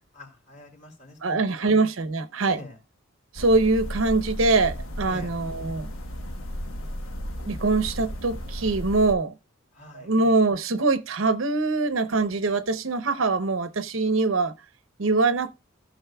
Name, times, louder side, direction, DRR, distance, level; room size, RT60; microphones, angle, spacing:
voice 1, 0.1-1.7 2.5-2.8 5.1-5.4 9.7-10.1, left 2 dB, 35° left, 2.6 m, -45 dB
voice 2, 1.2-2.6 3.3-5.9 7.5-9.3 9.9-14.5 15.0-15.5, right 3 dB, 80° right, 0.8 m, -23 dB
sound 1, 3.4-9.1, equal, 85° left, 1.2 m, -34 dB
14.5 x 6.3 x 2.3 m
head